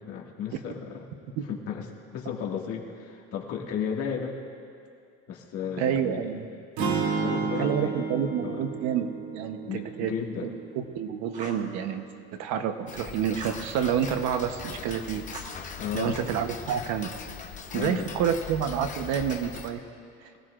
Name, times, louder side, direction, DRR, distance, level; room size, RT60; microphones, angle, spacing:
voice 1, 0.0-1.9 2.1-4.4 5.3-6.3 7.0-8.0 8.4-8.6 9.7-10.5 15.8-16.2 17.7-18.3, left 7 dB, 50° left, -1 dB, 2.1 m, -34 dB
voice 2, 5.8-6.5 7.6-9.1 9.3-10.1 10.4-10.5 10.8-12.0 12.4-15.3 15.9-17.1 17.7-19.8, right 8 dB, 70° right, 7 dB, 1.0 m, -28 dB
sound 1, 6.8-10.9, right 5 dB, 90° right, 2.6 m, -31 dB
Fire, 11.3-11.7 13.4-13.7 15.3-16.2, right 2 dB, 25° right, 1.8 m, -43 dB
Tick-tock, 12.9-19.7, left 6 dB, 25° left, 0.9 m, -40 dB
25.0 x 17.0 x 2.5 m, 2.4 s
cardioid pair, 160°, 30 cm